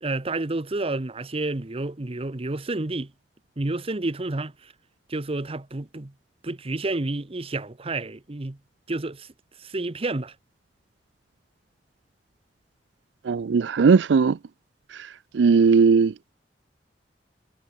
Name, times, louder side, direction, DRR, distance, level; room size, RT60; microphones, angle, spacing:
voice 1, 0.0-3.1 3.6-4.7 5.1-6.1 6.4-8.6 8.9-9.3 9.6-10.3, right 2 dB, 35° right, 0.9 m, -30 dB
voice 2, 13.3-14.3 15.4-16.1, right 5 dB, 80° right, 0.4 m, -17 dB
head